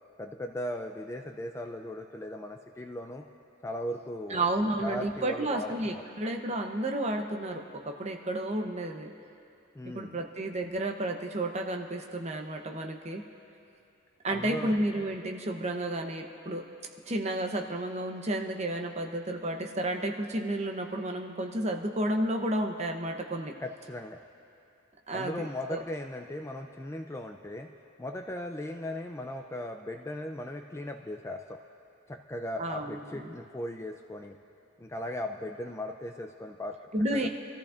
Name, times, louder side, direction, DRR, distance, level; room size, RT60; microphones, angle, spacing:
voice 1, 0.2-3.2 3.6-6.0 9.7-10.2 14.3-14.7 23.6-24.2 25.1-27.7 28.0-31.6 32.1-34.4 34.8-36.8 37.1-37.3, left 1 dB, 15° left, 4 dB, 0.3 m, -38 dB
voice 2, 4.3-9.1 9.8-13.2 14.2-16.6 17.1-23.5 25.1-25.8 32.6-33.3 36.9-37.3, right 1 dB, 30° right, 3 dB, 0.8 m, -31 dB
26.0 x 14.0 x 2.5 m, 2.7 s
head